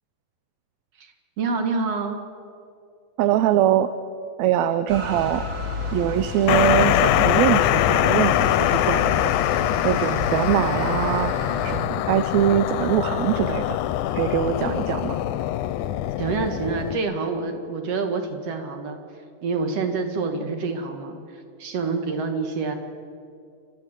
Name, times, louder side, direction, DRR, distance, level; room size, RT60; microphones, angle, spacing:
voice 1, 1.4-2.2 16.2-19.0 19.4-21.2 21.6-22.8, right 4 dB, 55° right, 6 dB, 2.8 m, -27 dB
voice 2, 3.2-3.9 4.4-5.5 5.9-9.3 9.8-11.3 11.6-13.8 14.1-15.2, right 11 dB, 75° right, 11 dB, 1.9 m, -22 dB
sound 1, 4.9-11.8, left 3 dB, 30° right, 2.7 m, -31 dB
sound 2, 6.5-17.0, left 13 dB, 90° left, 2.2 m, -23 dB
29.0 x 13.0 x 8.9 m, 2.4 s
omnidirectional pair, 3.4 m